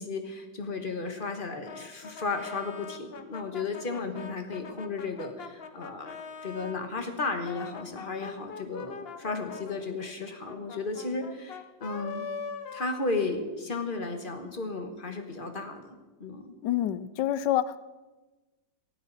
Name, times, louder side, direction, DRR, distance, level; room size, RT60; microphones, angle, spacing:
voice 1, 0.0-6.1 6.4-12.2 12.7-16.5, left 3 dB, 30° left, 6 dB, 1.4 m, -34 dB
Brass instrument, 1.6-6.8 7.3-13.6, left 5 dB, 45° left, 0.8 m, -43 dB
voice 2, 16.6-17.8, left 12 dB, 80° left, 16 dB, 1.3 m, -27 dB
19.0 x 13.0 x 4.1 m, 1.2 s
omnidirectional pair, 1.9 m